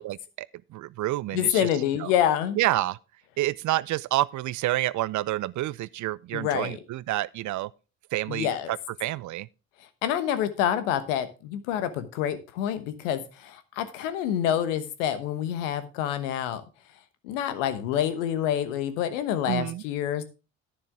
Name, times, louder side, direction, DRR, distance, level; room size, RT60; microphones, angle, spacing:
voice 1, 0.0-1.7 2.0-2.1 2.5-3.0 3.4-7.7 8.1-9.5 19.5-19.8, right 16 dB, 50° right, 0.5 m, -29 dB
voice 2, 1.3-2.6 6.3-6.8 8.3-8.7 10.0-16.6 17.2-20.2, left 10 dB, 75° left, 1.2 m, -27 dB
11.0 x 9.6 x 3.5 m
hypercardioid pair, 50°, 38 cm